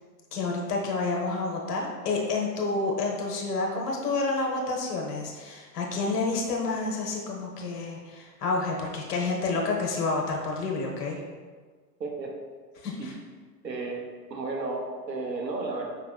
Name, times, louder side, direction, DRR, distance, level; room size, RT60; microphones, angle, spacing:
voice 1, 0.3-11.2 12.8-13.2, left 3 dB, 70° left, -1 dB, 1.1 m, -29 dB
voice 2, 12.0-12.3 13.0-13.1 13.6-14.0 14.3-15.9, right 3 dB, 90° right, 1 dB, 0.8 m, -33 dB
5.4 x 3.5 x 2.3 m, 1.5 s
figure-of-eight pair, 95°, 49 cm